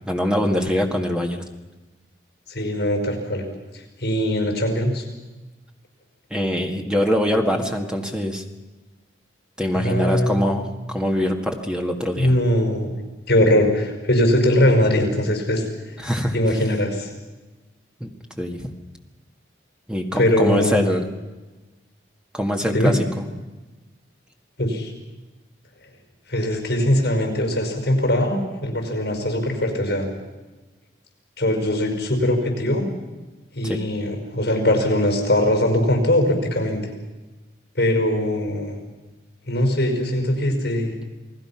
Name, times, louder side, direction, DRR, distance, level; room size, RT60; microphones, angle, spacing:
voice 1, 0.1-1.4 6.3-8.4 9.6-12.3 16.0-16.3 18.0-18.1 18.4-18.7 19.9-21.0 22.3-23.3 33.6-33.8, equal, 5° right, 2 dB, 1.8 m, -23 dB
voice 2, 2.5-3.4 3.7-5.0 9.7-10.4 12.2-12.9 13.3-16.0 16.3-17.1 20.2-20.9 22.7-23.0 24.6-24.9 26.3-30.1 31.4-32.8 33.5-36.8 37.8-38.8 39.5-40.9, left 1 dB, 65° left, 4 dB, 5.4 m, -21 dB
28.5 x 19.5 x 5.9 m, 1.2 s
head